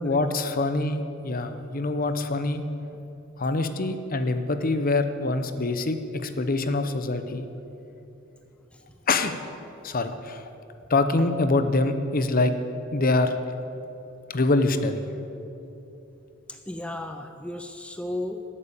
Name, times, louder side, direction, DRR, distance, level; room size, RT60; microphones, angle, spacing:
voice 1, 0.0-2.6 3.4-7.4 9.1-9.4 9.8-10.4 10.9-12.5 12.9-13.3 14.3-15.0, left 2 dB, 45° left, 9 dB, 0.8 m, -25 dB
voice 2, 16.5-18.4, left 1 dB, 5° left, 6 dB, 0.5 m, -35 dB
12.5 x 8.7 x 8.7 m, 2.8 s
head